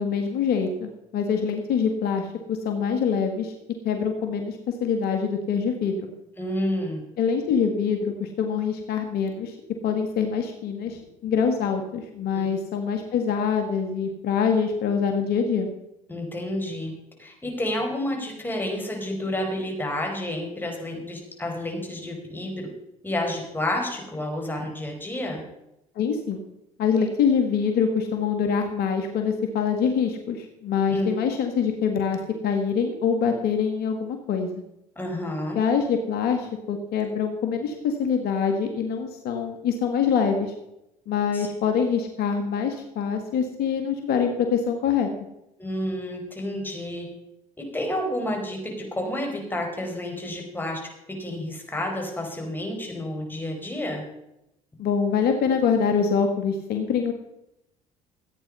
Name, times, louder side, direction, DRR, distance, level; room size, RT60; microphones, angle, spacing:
voice 1, 0.0-3.5 3.8-6.1 7.2-9.6 9.8-15.7 26.0-26.4 26.8-34.5 35.6-40.5 41.1-45.1 54.8-57.1, left 6 dB, 65° left, 5 dB, 1.8 m, -25 dB
voice 2, 6.4-7.0 12.3-12.5 16.1-16.9 17.2-22.5 23.0-25.4 30.9-31.1 35.0-35.6 41.3-41.5 45.6-47.1 47.6-48.6 49.0-50.8 51.2-54.0, left 1 dB, 10° left, 1 dB, 5.0 m, -30 dB
15.0 x 9.0 x 5.5 m, 0.85 s
hypercardioid pair, 70°, 17 cm